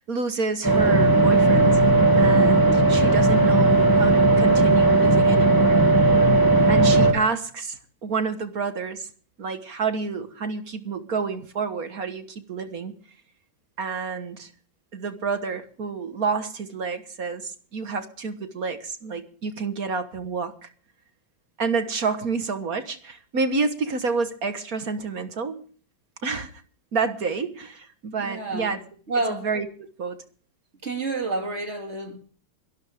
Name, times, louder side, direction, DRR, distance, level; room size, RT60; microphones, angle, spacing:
voice 1, 0.0-1.8 2.2-5.8 6.7-9.1 9.4-12.9 13.8-14.5 14.9-20.7 21.6-25.6 26.2-26.5 26.9-28.8 29.3-30.2, right 4 dB, 45° right, 1.6 m, -29 dB
sound 1, 0.6-7.1, right 2 dB, 10° left, 2.3 m, -17 dB
voice 2, 28.2-28.8 29.1-29.5 30.8-32.2, right 3 dB, 30° right, 3.0 m, -29 dB
22.5 x 12.5 x 3.6 m
omnidirectional pair, 2.4 m